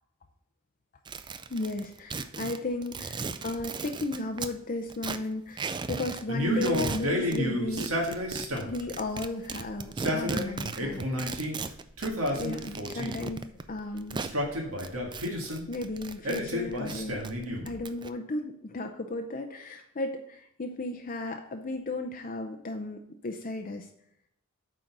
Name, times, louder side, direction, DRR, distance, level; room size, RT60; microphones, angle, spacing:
sound 1, 1.1-4.5 4.9-6.2 6.5-7.4 7.8-14.3 14.8-16.4 16.7-18.1, right 4 dB, 20° right, 0.3 m, -36 dB
voice 1, 1.5-7.9 8.6-11.4 12.3-13.4 13.7-14.2 15.7-17.2 17.7-23.9, left 2 dB, 40° left, 4 dB, 0.6 m, -35 dB
Male speech man speaking, 6.3-8.8 9.8-11.6 12.0-13.3 14.1-15.6 16.2-17.8, equal, 70° right, 1.8 m, -31 dB
8.7 x 3.9 x 6.0 m, 0.74 s
head